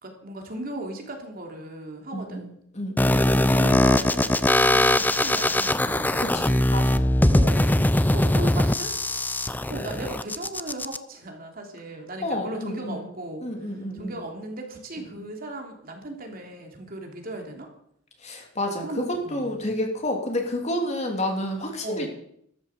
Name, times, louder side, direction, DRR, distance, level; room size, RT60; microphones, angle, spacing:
voice 1, 0.0-2.5 3.5-6.4 7.3-8.9 9.7-13.4 13.9-17.7 18.8-19.5 21.8-22.1, right 1 dB, 50° right, 2 dB, 3.1 m, -37 dB
voice 2, 2.1-3.2 6.2-7.1 12.2-13.1 13.4-14.2 18.2-22.1, left 1 dB, 35° left, 2 dB, 3.0 m, -30 dB
sound 1, 3.0-11.0, left 1 dB, 10° left, 0.5 m, -21 dB
13.5 x 13.5 x 7.2 m, 0.72 s
head